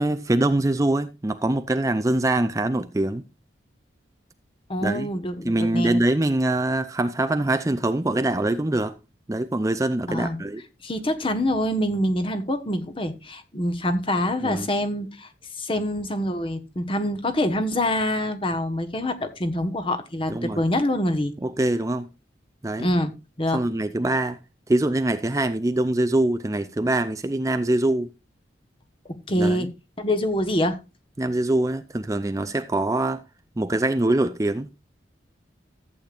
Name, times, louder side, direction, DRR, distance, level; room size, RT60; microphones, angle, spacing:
voice 1, 0.0-3.2 4.8-5.1 5.4-8.9 9.3-10.6 14.4-14.7 20.3-20.6 21.4-22.1 22.6-22.9 23.5-24.4 24.7-28.1 29.4-29.6 31.2-33.2 33.6-34.8, right 1 dB, 15° right, 0.5 m, -23 dB
voice 2, 4.7-6.0 10.1-10.4 10.8-15.3 15.6-21.3 22.8-23.1 23.4-23.6 29.3-29.7 30.0-30.8, left 1 dB, 30° left, 1.3 m, -25 dB
14.5 x 8.6 x 2.5 m
head